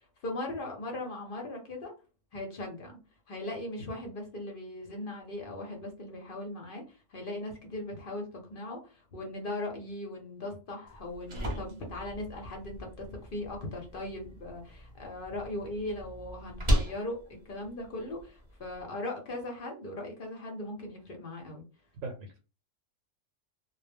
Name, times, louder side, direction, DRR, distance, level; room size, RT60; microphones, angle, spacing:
voice 1, 0.2-1.9 2.3-2.9 3.3-21.6, left 1 dB, 50° left, 2 dB, 0.7 m, -39 dB
sound 1, 10.9-18.8, equal, 30° right, 0.6 m, -36 dB
voice 2, 22.0-22.4, right 3 dB, 80° right, 2 dB, 0.9 m, -41 dB
2.1 x 2.1 x 3.3 m, 0.33 s
omnidirectional pair, 1.3 m